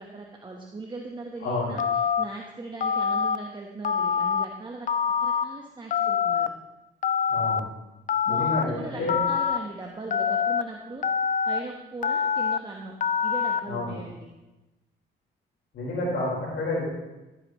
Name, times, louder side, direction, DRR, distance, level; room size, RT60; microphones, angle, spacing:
voice 1, 0.0-4.9 5.2-6.5 8.3-11.0 11.4-12.9 13.2-14.3, right 3 dB, 25° right, 0 dB, 1.2 m, -39 dB
Telephone, 1.8-2.2 2.8-3.4 3.8-4.5 4.9-5.4 5.9-6.5 7.0-7.6 8.1-8.6 9.1-9.6 10.1-10.6 11.0-11.6 12.0-12.6 13.0-13.6, left 7 dB, 40° left, 0.5 m, -25 dB
voice 2, 7.3-7.6 8.3-9.2 13.7-13.9 15.7-16.8, left 2 dB, 75° left, -5 dB, 4.6 m, -29 dB
15.0 x 9.1 x 3.1 m, 1.0 s
cardioid pair, 90°, 20 cm